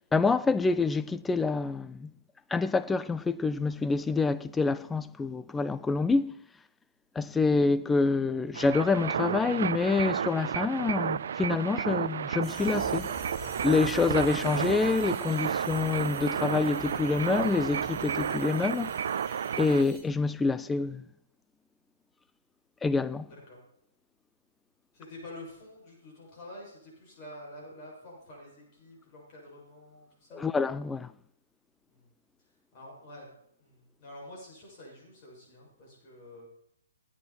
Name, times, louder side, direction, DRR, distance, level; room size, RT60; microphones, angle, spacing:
voice 1, 0.1-2.1 2.5-6.3 7.2-13.2 13.6-19.0 19.6-21.0 22.8-23.3 30.3-31.1, left 4 dB, 10° left, 0.4 m, -27 dB
sound 1, 8.5-19.8, right 8 dB, 55° right, 0.4 m, -32 dB
sound 2, 12.4-20.0, right 3 dB, 15° right, 4.4 m, -44 dB
voice 2, 23.3-23.6 24.9-30.4 31.9-32.1 32.7-33.3 33.6-36.5, left 1 dB, 35° left, 6.6 m, -48 dB
16.5 x 9.7 x 4.4 m
figure-of-eight pair, 130°, 0 cm